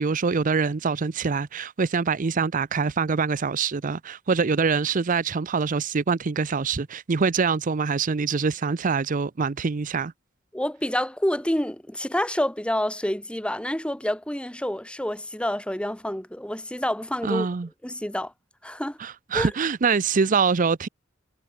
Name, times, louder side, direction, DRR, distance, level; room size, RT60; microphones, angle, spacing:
voice 1, 0.0-10.1 17.2-17.7 19.0-20.9, right 5 dB, 40° right, 0.6 m, -24 dB
voice 2, 10.5-17.5 17.8-18.3 18.6-19.0 19.3-19.5, left 1 dB, 5° left, 1.7 m, -28 dB
head